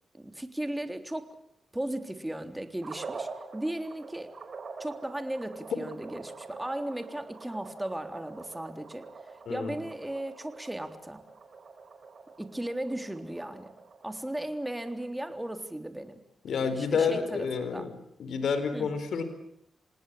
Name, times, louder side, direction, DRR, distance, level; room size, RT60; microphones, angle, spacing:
voice 1, 0.1-1.4 1.7-4.3 4.8-9.1 9.5-11.2 12.4-13.7 14.0-16.2 16.7-17.9 18.7-18.9, right 1 dB, 15° right, 7 dB, 3.5 m, -36 dB
sound 1, 2.8-15.1, right 4 dB, 55° right, 4.6 m, -45 dB
voice 2, 16.4-17.9 18.2-19.2, left 5 dB, 75° left, 10 dB, 4.1 m, -29 dB
27.5 x 19.0 x 8.6 m, 0.73 s
supercardioid pair, 40°, 0 cm